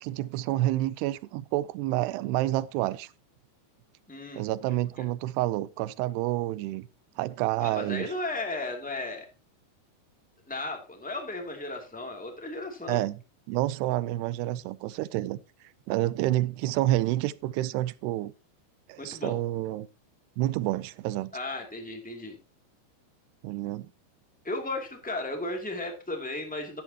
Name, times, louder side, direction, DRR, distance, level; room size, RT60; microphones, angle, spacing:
voice 1, 0.0-3.1 4.4-6.9 7.2-8.1 12.9-13.2 13.5-15.4 15.9-18.3 18.9-19.9 20.4-21.3 23.4-23.9, right 16 dB, 80° right, 2.4 m, -29 dB
voice 2, 4.1-4.4 7.6-9.2 10.5-13.0 19.0-19.3 21.3-22.3 24.4-26.8, left 2 dB, 5° left, 1.0 m, -35 dB
13.0 x 10.5 x 2.9 m
omnidirectional pair, 5.2 m